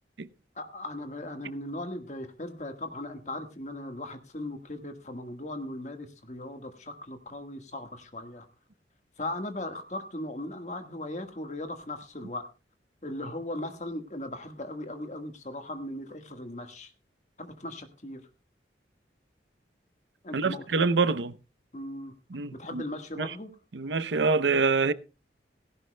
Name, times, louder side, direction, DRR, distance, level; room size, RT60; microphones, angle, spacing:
voice 1, 0.5-8.5 9.2-12.5 13.0-16.9 17.4-18.2 20.2-20.9 21.7-22.1 22.5-23.5, left 1 dB, 40° left, 1.6 m, -38 dB
voice 2, 20.3-21.3 22.3-22.8 23.2-23.3 23.7-24.9, right 4 dB, 85° right, 0.7 m, -25 dB
17.5 x 16.5 x 2.2 m
head